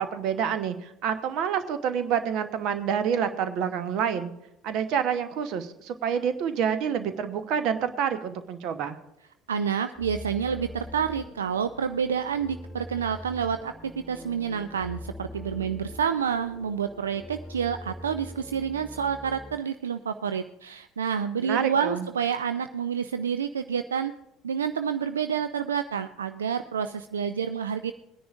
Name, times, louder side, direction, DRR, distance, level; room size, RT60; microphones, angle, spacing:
voice 1, 0.0-4.3 4.6-9.0 21.4-22.1, right 8 dB, 55° right, 10 dB, 1.0 m, -28 dB
voice 2, 9.5-24.1 24.4-27.9, right 7 dB, 80° right, 10 dB, 0.3 m, -29 dB
sound 1, 9.9-19.5, left 1 dB, 10° left, 1.5 m, -43 dB
21.5 x 10.0 x 2.5 m, 0.86 s
figure-of-eight pair, 60°, 0 cm